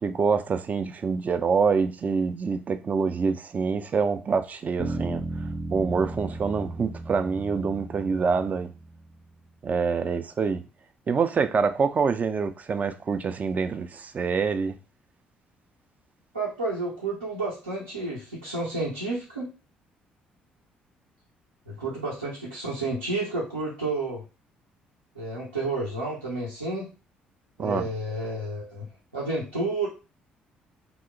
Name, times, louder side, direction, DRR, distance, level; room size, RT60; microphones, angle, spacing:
voice 1, 0.0-5.2 5.7-8.7 9.6-10.6 11.1-14.8 27.6-27.9, right 5 dB, 35° right, 0.4 m, -26 dB
sound 1, 4.8-9.2, right 2 dB, 5° left, 0.6 m, -35 dB
voice 2, 16.3-19.5 21.7-24.2 25.1-26.9 27.6-28.9 29.1-29.9, right 2 dB, 85° right, 0.7 m, -30 dB
3.0 x 2.1 x 3.6 m
figure-of-eight pair, 45°, 5 cm